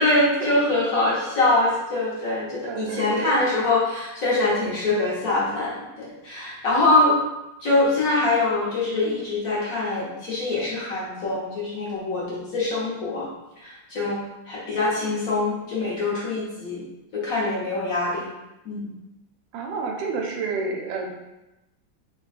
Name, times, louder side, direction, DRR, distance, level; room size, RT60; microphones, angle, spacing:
voice 1, 0.0-7.2 7.6-13.3 13.6-14.2 14.5-16.8 17.1-18.3 18.6-18.9, left 2 dB, 55° left, -6 dB, 1.1 m, -24 dB
voice 2, 2.6-3.4 19.5-21.1, right 4 dB, 80° right, 1 dB, 1.2 m, -29 dB
3.2 x 2.2 x 4.0 m, 0.97 s
omnidirectional pair, 2.0 m